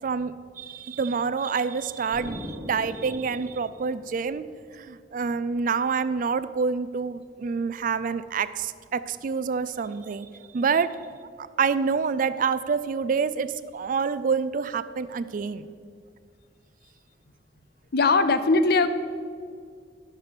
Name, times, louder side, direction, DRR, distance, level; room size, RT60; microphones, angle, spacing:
voice 1, 0.0-10.3 10.5-11.0 11.4-15.7, right 5 dB, 50° right, 15 dB, 0.4 m, -27 dB
Explosion, 2.1-4.8, left 1 dB, 20° right, 1.1 m, -41 dB
voice 2, 17.9-18.9, left 3 dB, 60° left, 11 dB, 0.6 m, -20 dB
11.0 x 6.0 x 6.7 m, 2.1 s
head